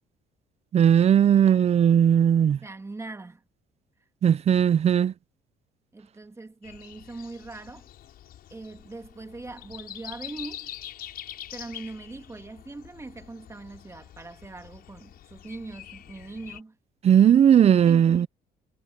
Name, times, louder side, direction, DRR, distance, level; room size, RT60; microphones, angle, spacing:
voice 1, 0.7-2.6 4.2-5.1 17.0-18.3, right 9 dB, 40° right, 0.5 m, -18 dB
voice 2, 2.5-3.4 5.9-7.9 8.5-10.7 11.5-16.8 17.8-18.3, right 3 dB, 15° right, 2.2 m, -41 dB
Breathing, 6.6-16.6, left 11 dB, 65° left, 6.2 m, -45 dB
cardioid pair, 110°, 17 cm